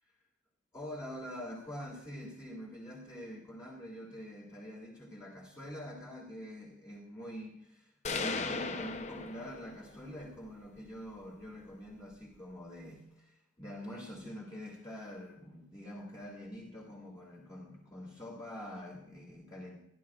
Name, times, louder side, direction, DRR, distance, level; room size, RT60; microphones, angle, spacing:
voice 1, 0.7-19.8, equal, 20° left, -5 dB, 2.5 m, -45 dB
sound 1, 8.0-10.0, left 4 dB, 35° left, 0.7 m, -37 dB
28.5 x 11.5 x 2.5 m, 0.75 s
head